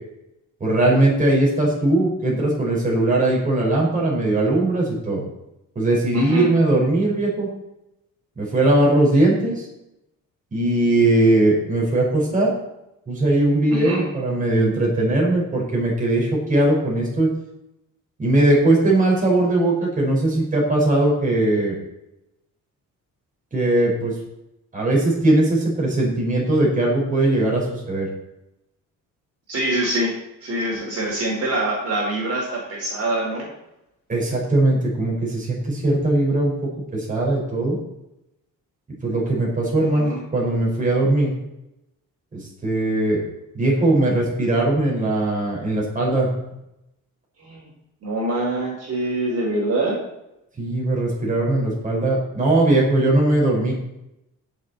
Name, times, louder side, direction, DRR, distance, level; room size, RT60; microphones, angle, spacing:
voice 1, 0.6-5.2 5.8-7.5 8.4-9.7 10.5-12.5 13.1-17.3 18.2-21.7 23.5-24.1 24.7-28.1 34.1-36.5 36.9-37.8 39.0-41.3 42.3-43.2 43.5-46.3 50.6-53.7, right 2 dB, 25° right, -3 dB, 5.5 m, -19 dB
voice 2, 6.1-6.5 13.7-14.0 29.5-30.1 30.4-33.5 39.9-40.2 47.4-47.7 48.0-50.0, right 1 dB, 45° right, -3 dB, 4.9 m, -24 dB
17.5 x 7.7 x 4.4 m, 0.87 s
cardioid pair, 135°, 33 cm